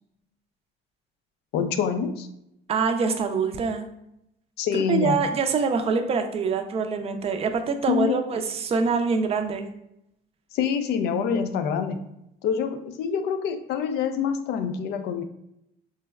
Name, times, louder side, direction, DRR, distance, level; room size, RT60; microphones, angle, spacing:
voice 1, 1.5-2.3 4.6-5.2 7.9-8.2 10.5-12.0 12.4-15.2, left 7 dB, 75° left, 8 dB, 0.4 m, -26 dB
voice 2, 2.7-3.9 4.7-9.7, right 5 dB, 35° right, 7 dB, 0.4 m, -25 dB
4.5 x 2.1 x 2.3 m, 0.81 s
cardioid pair, 110°, 17 cm